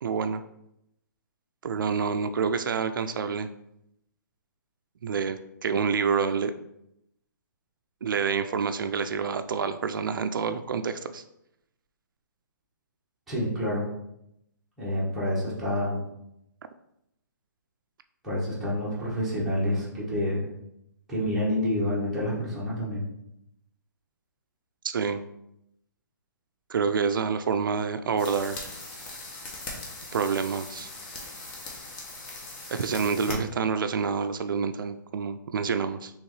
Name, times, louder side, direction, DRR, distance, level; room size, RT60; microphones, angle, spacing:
voice 1, 0.0-0.4 1.6-3.5 5.0-6.5 8.0-11.2 24.8-25.2 26.7-28.6 30.1-30.9 32.7-36.1, right 6 dB, 85° right, 9 dB, 0.4 m, -27 dB
voice 2, 13.3-13.9 14.8-16.0 18.2-20.5 21.1-23.1 33.3-33.4, left 1 dB, 5° right, -9 dB, 1.1 m, -28 dB
sound 1, 28.2-33.3, left 2 dB, 20° left, 0.7 m, -40 dB
4.5 x 3.1 x 3.1 m, 0.81 s
hypercardioid pair, 170°, 11 cm